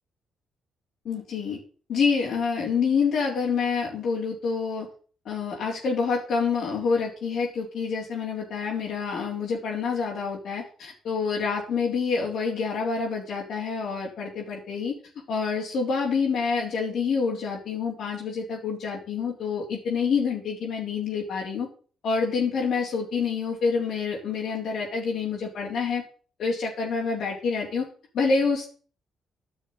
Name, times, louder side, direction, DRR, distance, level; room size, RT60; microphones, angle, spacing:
voice 1, 1.0-1.6 1.9-4.9 5.3-15.0 15.3-21.7 22.0-26.0 26.4-27.9 28.1-28.7, left 5 dB, 65° left, -5 dB, 3.7 m, -27 dB
10.5 x 6.3 x 9.0 m, 0.41 s
cardioid pair, 90°, 0 cm